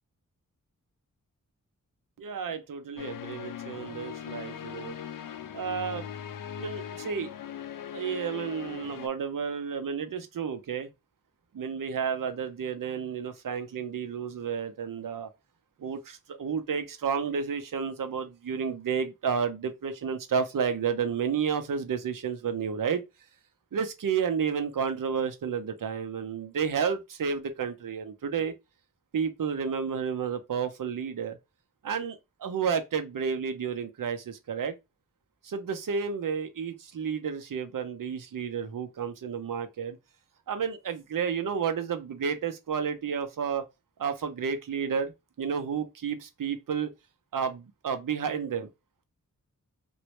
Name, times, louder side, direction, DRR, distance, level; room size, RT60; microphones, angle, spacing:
voice 1, 2.2-5.0 5.5-6.1 6.6-7.3 7.9-10.9 11.5-15.3 15.8-23.0 23.7-28.5 29.1-31.4 31.8-34.7 35.4-40.0 40.5-43.6 44.0-45.1 45.4-46.9 47.3-48.7, right 6 dB, 80° right, 0.7 m, -31 dB
sound 1, 3.0-9.1, left 9 dB, 80° left, 0.5 m, -40 dB
3.1 x 2.6 x 3.0 m
wide cardioid pair, 65°, 32 cm